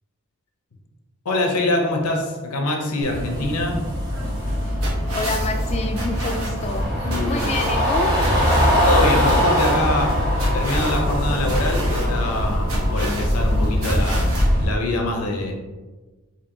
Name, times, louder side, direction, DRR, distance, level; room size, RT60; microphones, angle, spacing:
voice 1, 1.2-3.8 7.0-7.7 8.8-10.1 10.5-14.3 14.6-15.5, left 2 dB, 90° left, 2 dB, 0.7 m, -24 dB
sound 1, 3.0-14.6, equal, 45° right, 1.5 m, -22 dB
sound 2, 4.1-14.5, right 1 dB, 65° right, 1.0 m, -30 dB
voice 2, 5.1-6.9 7.3-8.2, left 3 dB, 30° left, 5 dB, 0.3 m, -27 dB
4.4 x 2.7 x 2.6 m, 1.3 s
head